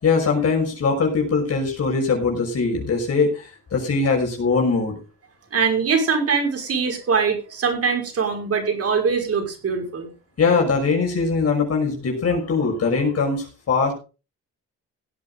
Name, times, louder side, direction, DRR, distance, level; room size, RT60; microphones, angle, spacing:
voice 1, 0.0-5.0 10.4-13.9, left 4 dB, 55° left, 1 dB, 6.0 m, -21 dB
voice 2, 5.5-10.1, right 5 dB, 50° right, 3 dB, 5.9 m, -22 dB
17.5 x 8.5 x 3.9 m, 0.32 s
cardioid pair, 90°, 30 cm